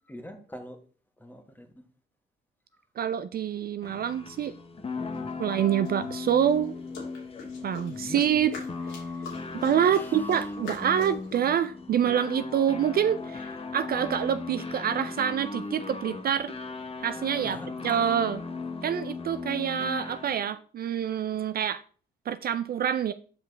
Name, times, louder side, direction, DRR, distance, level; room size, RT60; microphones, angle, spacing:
voice 1, 0.1-0.8 1.2-1.7 5.1-5.5 7.9-8.2 9.9-10.1 17.4-17.7, left 1 dB, 10° left, 1.3 m, -43 dB
voice 2, 3.0-4.5 5.4-6.7 7.6-8.6 8.9-9.0 9.6-16.5 17.0-18.4 18.8-21.8 22.3-23.1, right 9 dB, 50° right, 0.4 m, -26 dB
sound 1, 3.8-20.6, left 4 dB, 30° left, 0.8 m, -37 dB
sound 2, 5.1-5.2 5.8-11.4, left 4 dB, 80° left, 3.0 m, -44 dB
6.9 x 5.7 x 3.3 m
cardioid pair, 90°, 20 cm